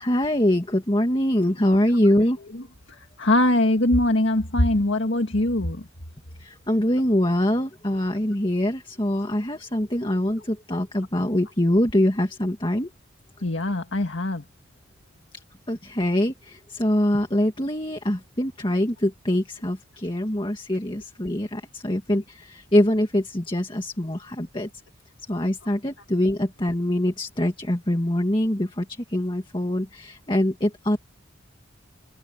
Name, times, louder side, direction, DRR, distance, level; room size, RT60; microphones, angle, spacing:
voice 1, 0.0-2.4 6.4-12.9 15.7-24.7 25.3-31.0, left 1 dB, 25° left, 2.0 m, -24 dB
voice 2, 2.5-5.9 13.4-14.4, left 1 dB, 65° left, 1.9 m, -22 dB
open air
head